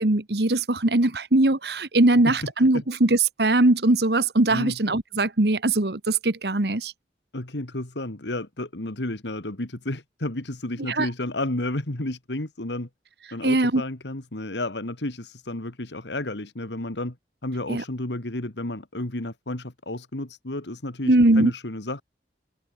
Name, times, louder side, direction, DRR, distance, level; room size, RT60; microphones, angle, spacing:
voice 1, 0.0-6.9 10.9-11.1 13.4-13.8 17.7-17.8 21.1-21.5, right 2 dB, 65° right, 1.5 m, -21 dB
voice 2, 7.3-12.9 13.3-17.2 17.4-22.0, left 1 dB, 85° left, 2.3 m, -32 dB
head